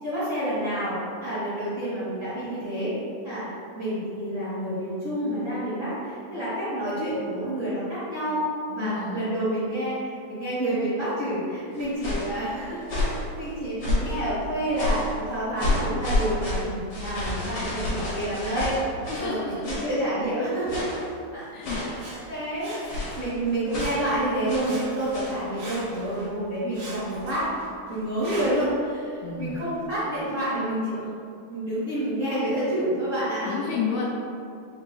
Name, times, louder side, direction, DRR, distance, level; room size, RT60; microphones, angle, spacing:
voice 1, 0.0-2.9 3.2-3.5 3.7-8.4 8.7-15.0 15.3-21.0 21.3-21.9 22.3-27.5 27.9-31.1 31.5-33.5, right 1 dB, 55° right, -15 dB, 1.4 m, -28 dB
voice 2, 8.7-9.2 19.1-19.7 21.5-21.8 29.2-29.5 33.5-34.1, left 6 dB, 80° left, -3 dB, 2.2 m, -30 dB
sound 1, 11.7-12.3 12.8-13.2 13.8-14.2 14.7-15.1 15.6-19.3 19.6-19.9 20.7-21.1 21.6-22.0 22.9-23.2 23.7-24.0 24.5-24.8 25.1-25.4, left 2 dB, 65° left, 1.2 m, -29 dB
Sawing, 21.9-23.4 23.7-24.3 24.6-26.3 26.7-28.7 29.4-29.5, right 1 dB, 85° right, 1.3 m, -41 dB
5.7 x 2.7 x 3.1 m, 2.4 s
omnidirectional pair, 4.4 m